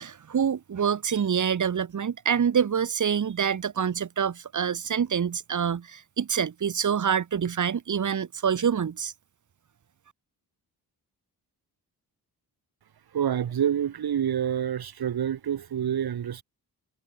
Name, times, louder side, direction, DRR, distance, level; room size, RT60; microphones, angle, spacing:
voice 1, 0.0-9.1, right 7 dB, 50° right, 2.1 m, -26 dB
voice 2, 13.1-16.4, right 9 dB, 70° right, 4.0 m, -27 dB
wide cardioid pair, 130°, 38 cm